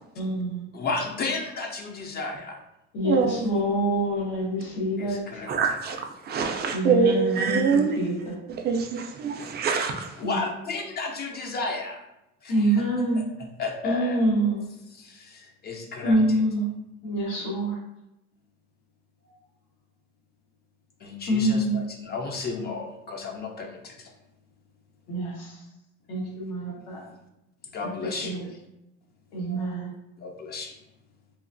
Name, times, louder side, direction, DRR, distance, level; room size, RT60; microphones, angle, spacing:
voice 1, 0.2-0.7 2.9-5.2 6.7-8.3 10.2-10.4 12.5-13.2 13.8-14.7 16.0-16.7 17.0-17.8 21.3-21.8 25.1-25.6 26.1-27.0 28.0-28.5 29.3-29.9, right 1 dB, 90° left, -3 dB, 1.1 m, -26 dB
voice 2, 0.7-2.6 5.0-5.5 10.2-12.0 12.4-12.7 13.6-14.4 14.9-16.2 21.0-24.1 27.7-28.4 30.2-30.7, left 3 dB, 35° left, 2 dB, 0.4 m, -33 dB
voice 3, 3.0-3.4 5.5-8.0 8.6-10.2, right 5 dB, 35° right, 4 dB, 0.4 m, -24 dB
3.0 x 2.4 x 2.5 m, 0.88 s
cardioid pair, 125°, 30 cm